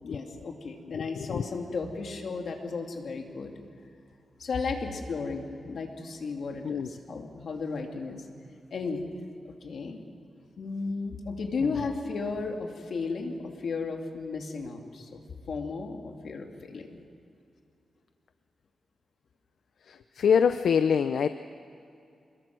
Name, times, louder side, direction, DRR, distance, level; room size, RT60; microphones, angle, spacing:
voice 1, 0.0-3.5 4.4-8.2 8.7-9.0 9.4-10.0 10.6-15.2 15.5-17.0, left 4 dB, 60° left, 2 dB, 2.7 m, -34 dB
voice 2, 0.9-1.4 6.6-6.9 11.6-11.7 19.9-21.3, left 7 dB, 80° left, 10 dB, 0.6 m, -25 dB
27.5 x 21.5 x 6.2 m, 2.6 s
wide cardioid pair, 140°, 0 cm